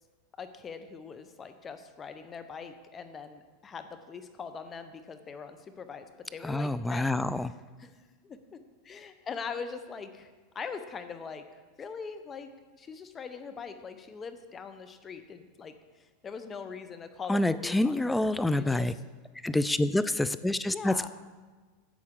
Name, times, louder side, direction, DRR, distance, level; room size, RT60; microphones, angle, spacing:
voice 1, 0.4-7.9 8.2-8.6 8.8-11.4 11.8-12.5 12.8-19.0 20.6-21.1, left 5 dB, 25° left, 9 dB, 0.8 m, -42 dB
voice 2, 6.4-7.5 17.3-18.9 19.4-20.9, left 1 dB, 5° left, 14 dB, 0.3 m, -27 dB
11.0 x 7.4 x 3.8 m, 1.4 s
hypercardioid pair, 115°, 0 cm